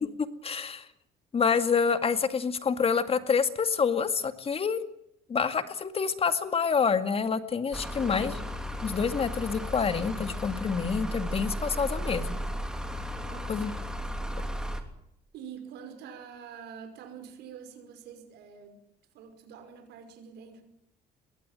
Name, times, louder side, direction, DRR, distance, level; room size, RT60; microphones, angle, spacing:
voice 1, 0.4-0.9 1.3-4.8 5.3-8.3 8.8-12.4 13.5-13.7, left 6 dB, 35° left, 10 dB, 2.2 m, -27 dB
sound 1, 7.7-14.8, equal, 5° right, 3.1 m, -35 dB
voice 2, 7.9-8.5 13.2-14.2 15.3-18.8 19.1-20.6, right 7 dB, 80° right, 7 dB, 5.4 m, -46 dB
22.0 x 17.0 x 9.1 m, 0.78 s
cardioid pair, 110°, 17 cm